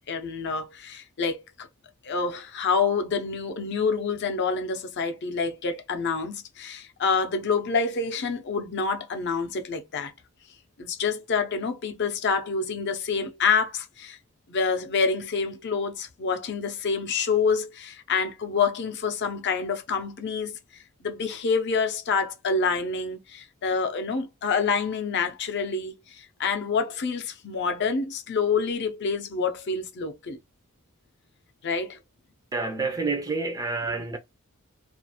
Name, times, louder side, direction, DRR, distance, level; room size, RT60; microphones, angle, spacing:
voice 1, 0.1-1.7 2.0-10.1 10.8-14.2 14.5-20.6 21.0-30.4 31.6-32.0 33.8-34.0, left 5 dB, 55° left, 0.5 m, -27 dB
voice 2, 32.5-34.2, right 3 dB, 15° right, 0.4 m, -28 dB
2.5 x 2.3 x 2.8 m
head